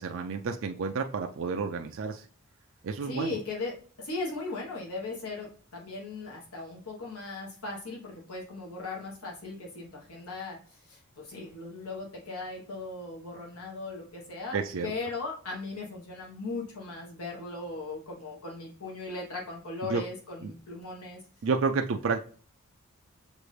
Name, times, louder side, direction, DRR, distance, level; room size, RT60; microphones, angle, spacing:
voice 1, 0.0-2.2 2.8-3.4 14.5-14.9 19.8-20.0 20.4-20.5 21.4-22.2, right 4 dB, 60° right, 4 dB, 0.4 m, -30 dB
voice 2, 3.0-21.2, left 2 dB, 80° left, -2 dB, 1.3 m, -38 dB
6.3 x 2.5 x 3.2 m, 0.43 s
head